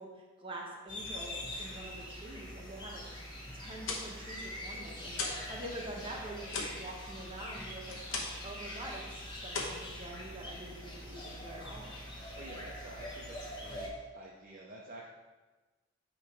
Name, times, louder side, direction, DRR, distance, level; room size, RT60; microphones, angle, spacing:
voice 1, 0.0-3.3 3.5-11.9, right 1 dB, 25° right, -1 dB, 1.0 m, -46 dB
sound 1, 0.9-13.9, left 1 dB, 20° left, 1.1 m, -44 dB
sound 2, 3.8-5.5 5.8-8.5 8.8-9.1 9.5-10.6, left 3 dB, 70° left, 1.0 m, -39 dB
voice 2, 12.3-15.1, right 2 dB, 40° right, -3 dB, 0.6 m, -49 dB
8.9 x 3.1 x 4.7 m, 1.2 s
head